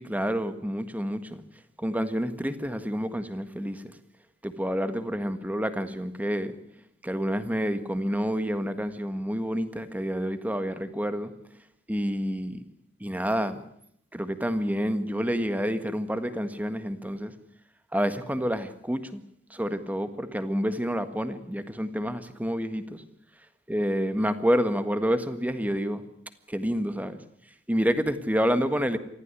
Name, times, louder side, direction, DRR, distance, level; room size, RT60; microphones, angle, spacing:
voice 1, 0.1-1.4 1.8-4.0 4.4-6.6 7.0-11.3 11.9-12.6 13.0-13.6 14.1-17.3 17.9-19.2 19.5-23.0 23.7-26.0 26.5-27.2 27.7-29.0, equal, 10° right, 10 dB, 1.7 m, -28 dB
24.0 x 15.0 x 9.8 m, 0.70 s
head